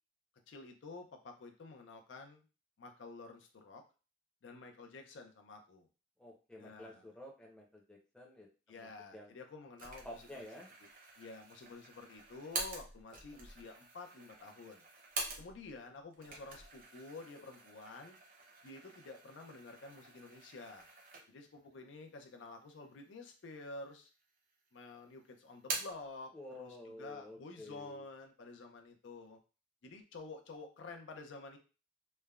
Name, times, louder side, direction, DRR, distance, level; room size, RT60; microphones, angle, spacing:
voice 1, 0.5-2.5 2.8-3.8 4.4-5.9 6.6-7.0 8.7-10.3 11.2-14.8 15.4-18.2 18.6-20.9 21.3-24.1 24.7-29.4 29.8-31.6, left 3 dB, 80° left, 4 dB, 0.5 m, -50 dB
voice 2, 6.2-9.3 10.0-10.7 26.3-28.0, left 1 dB, 5° left, -2 dB, 0.6 m, -51 dB
sound 1, 9.8-15.8 16.1-21.6 22.0-22.1 22.9-23.6 23.9-24.7 25.0-26.1, right 3 dB, 50° right, 0.7 m, -46 dB
3.2 x 2.1 x 2.3 m, 0.34 s
head